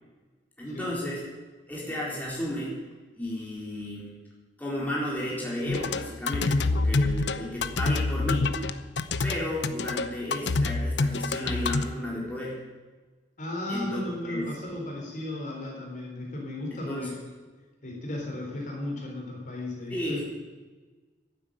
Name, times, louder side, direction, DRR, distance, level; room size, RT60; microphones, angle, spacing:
voice 1, 0.6-1.2 1.7-2.7 3.1-4.1 4.6-8.5 9.2-12.6 13.7-14.5 16.7-17.1 19.9-20.3, left 1 dB, 10° left, -5 dB, 4.1 m, -33 dB
sound 1, 5.7-11.8, left 3 dB, 80° left, 0.7 m, -26 dB
voice 2, 13.4-17.2 17.8-20.2, left 1 dB, 45° left, -1 dB, 3.9 m, -35 dB
11.5 x 9.8 x 8.9 m, 1.3 s
head